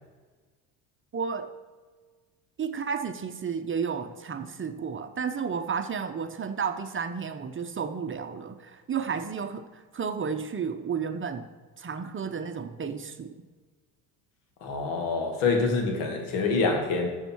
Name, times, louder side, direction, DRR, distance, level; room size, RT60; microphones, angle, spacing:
voice 1, 1.1-1.5 2.6-11.4 11.8-13.3, right 6 dB, 25° right, 9 dB, 0.8 m, -32 dB
voice 2, 14.6-17.1, left 4 dB, 75° left, 3 dB, 2.4 m, -26 dB
12.5 x 7.3 x 4.6 m, 1.4 s
hypercardioid pair, 75°, 46 cm